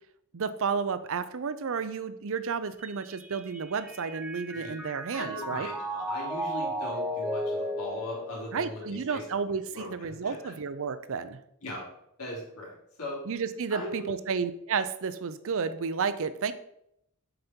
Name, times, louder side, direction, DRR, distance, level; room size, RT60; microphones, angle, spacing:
voice 1, 0.3-5.7 8.5-11.4 13.3-16.5, right 5 dB, 65° right, 13 dB, 0.6 m, -31 dB
Mallet percussion, 2.8-9.3, equal, 5° right, 0.6 m, -35 dB
voice 2, 5.1-9.4 9.7-10.5 11.6-11.8 12.2-13.2 13.7-14.1, left 1 dB, 85° left, -4 dB, 3.3 m, -39 dB
7.9 x 5.2 x 4.4 m, 0.77 s
head